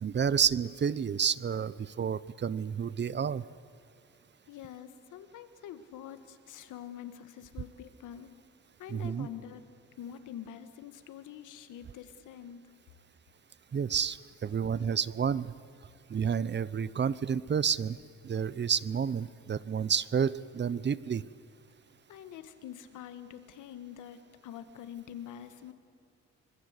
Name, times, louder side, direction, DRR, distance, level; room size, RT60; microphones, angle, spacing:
voice 1, 0.0-3.4 8.9-9.3 13.7-15.5 16.1-18.0 18.2-21.2, right 7 dB, 35° right, 19 dB, 0.8 m, -30 dB
voice 2, 4.5-8.3 8.8-9.6 10.0-12.6 22.1-25.7, left 10 dB, 85° left, 10 dB, 1.7 m, -46 dB
26.0 x 22.0 x 8.2 m, 2.5 s
cardioid pair, 90°, 30 cm